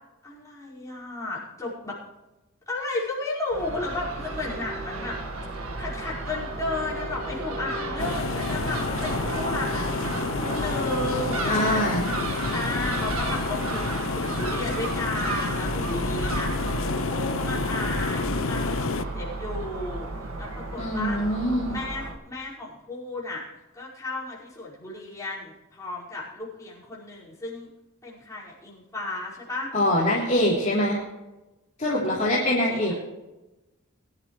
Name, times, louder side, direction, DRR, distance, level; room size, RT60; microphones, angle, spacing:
voice 1, 0.2-2.0 2.7-5.2 5.4-12.2 12.5-20.1 20.4-21.2 21.7-23.4 23.7-27.7 28.0-29.7 31.8-32.8, left 2 dB, 15° left, -8 dB, 5.1 m, -34 dB
Crow / Gull seagull, 3.5-22.1, right 2 dB, 85° right, 1.7 m, -32 dB
sound 1, 8.0-19.0, left 4 dB, 65° left, 0.6 m, -30 dB
voice 2, 11.5-12.1 20.8-21.8 29.7-31.0 31.8-32.9, left 1 dB, 35° left, -7 dB, 3.3 m, -24 dB
22.5 x 11.5 x 3.2 m, 1.0 s
head